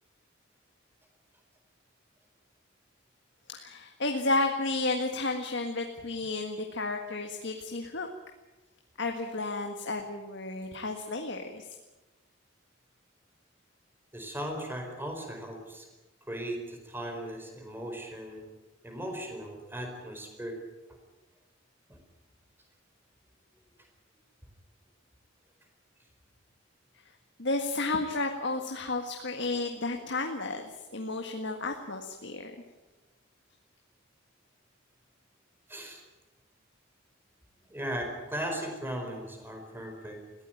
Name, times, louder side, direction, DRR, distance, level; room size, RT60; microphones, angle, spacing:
voice 1, 3.5-8.1 9.0-11.7 27.4-30.6 30.9-32.5, left 2 dB, 60° left, 4 dB, 1.7 m, -32 dB
voice 2, 14.1-15.9 16.3-18.5 18.8-20.6 21.9-22.0 35.7-36.0 37.7-40.2, right 1 dB, 10° right, 3 dB, 4.6 m, -37 dB
21.5 x 16.5 x 9.2 m, 1.1 s
head